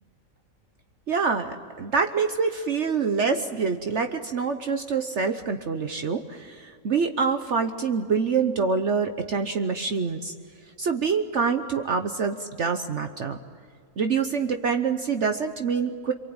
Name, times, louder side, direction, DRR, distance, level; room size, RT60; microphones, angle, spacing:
voice 1, 1.1-10.3 10.8-13.4 14.0-16.1, right 5 dB, 55° right, 7 dB, 1.2 m, -26 dB
27.5 x 23.5 x 8.9 m, 2.1 s
omnidirectional pair, 1.5 m